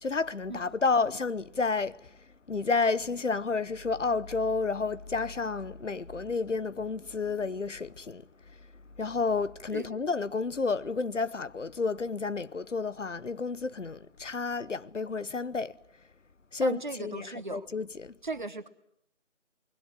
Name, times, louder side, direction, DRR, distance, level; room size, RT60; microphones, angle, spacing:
voice 1, 0.0-8.7 9.0-15.8 16.5-18.2, left 4 dB, 70° left, 1.0 m, -31 dB
voice 2, 16.6-17.7 18.2-18.7, right 3 dB, 40° right, 1.2 m, -36 dB
29.0 x 21.0 x 7.5 m
figure-of-eight pair, 165°, 38 cm